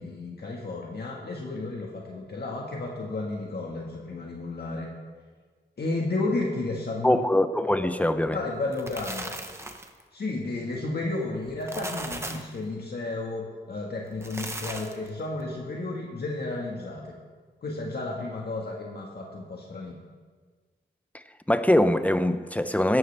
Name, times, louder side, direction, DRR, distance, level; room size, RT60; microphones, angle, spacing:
voice 1, 0.0-4.9 5.8-7.2 8.0-9.3 10.1-17.1 17.6-20.0, left 2 dB, 65° left, -2 dB, 1.6 m, -32 dB
voice 2, 7.0-8.4 21.5-23.0, left 1 dB, 10° left, 10 dB, 0.6 m, -22 dB
sound 1, 8.5-10.0 11.5-12.6 14.1-15.1, right 1 dB, 15° right, 1.0 m, -37 dB
17.0 x 12.5 x 3.4 m, 1.5 s
wide cardioid pair, 110°, 18 cm